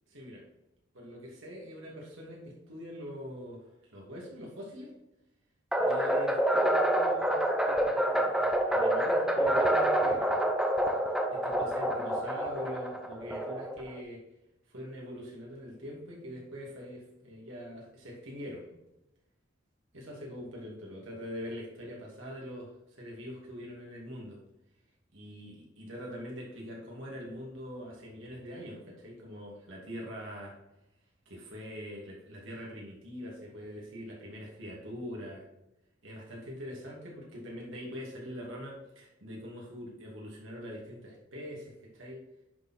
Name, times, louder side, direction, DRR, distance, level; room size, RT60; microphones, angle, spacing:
voice 1, 0.9-4.9 5.8-10.4 11.3-14.2 14.7-18.7 19.9-24.4 25.1-30.5 31.3-35.5 36.0-42.2, equal, 65° right, -3 dB, 2.5 m, -43 dB
sound 1, 5.7-14.0, right 1 dB, 5° right, 0.8 m, -27 dB
10.5 x 4.4 x 4.4 m, 0.90 s
head